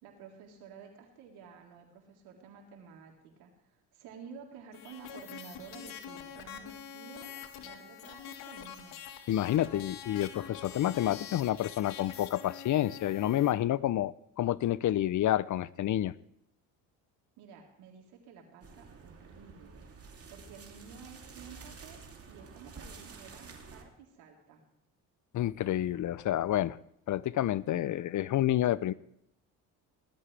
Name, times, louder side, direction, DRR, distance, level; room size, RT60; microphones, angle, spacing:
voice 1, 0.0-9.0 17.4-19.9 20.3-22.0 22.3-24.6, right 6 dB, 80° right, 3.8 m, -52 dB
sound 1, 4.7-13.5, left 8 dB, 75° left, 1.9 m, -45 dB
voice 2, 9.3-16.1 25.3-26.8 27.1-28.9, left 12 dB, 50° left, 0.6 m, -29 dB
sound 2, 18.6-23.8, right 5 dB, 40° right, 2.9 m, -50 dB
18.5 x 13.5 x 3.4 m
supercardioid pair, 75°, 38 cm